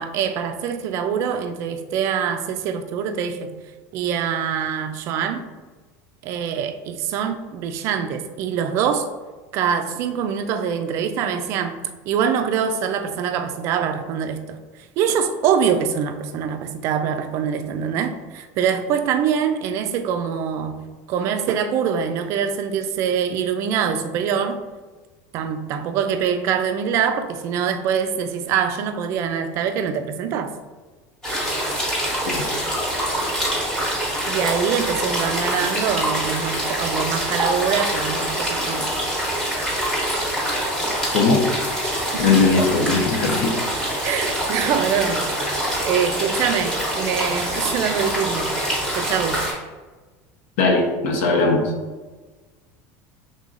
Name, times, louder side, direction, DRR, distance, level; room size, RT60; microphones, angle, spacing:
voice 1, 0.0-3.5 3.9-5.5 6.2-9.1 9.5-11.8 12.1-14.6 15.0-20.8 21.1-24.6 25.3-30.5 34.3-38.9 42.1-42.4 44.0-45.3 45.8-48.5 49.0-49.4, right 7 dB, 40° right, 8 dB, 0.3 m, -24 dB
sound 1, 31.2-49.5, equal, 10° left, 1.1 m, -25 dB
voice 2, 42.2-43.5 50.6-51.6, left 3 dB, 75° left, 2 dB, 0.8 m, -19 dB
5.3 x 3.6 x 2.5 m, 1.3 s
cardioid pair, 175°, 8 cm